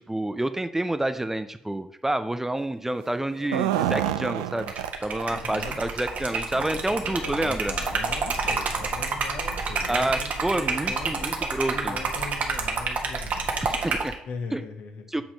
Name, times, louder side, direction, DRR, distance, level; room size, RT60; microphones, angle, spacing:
voice 1, 0.0-4.7 5.0-7.7 9.9-12.0 13.6-14.2 14.5-14.6 15.1-15.2, right 1 dB, 10° right, 11 dB, 0.5 m, -28 dB
sound 1, 3.3-5.4 5.6-5.7 6.2-6.3 7.2-7.3 7.7-7.8, right 12 dB, 75° right, 0.4 m, -28 dB
Liquid, 4.6-14.1, right 4 dB, 50° right, 1.3 m, -28 dB
voice 2, 5.2-5.8 6.5-11.4 11.7-13.5 14.3-15.2, left 4 dB, 60° left, 4 dB, 1.3 m, -39 dB
7.4 x 4.4 x 5.0 m, 0.77 s
figure-of-eight pair, 45°, 3 cm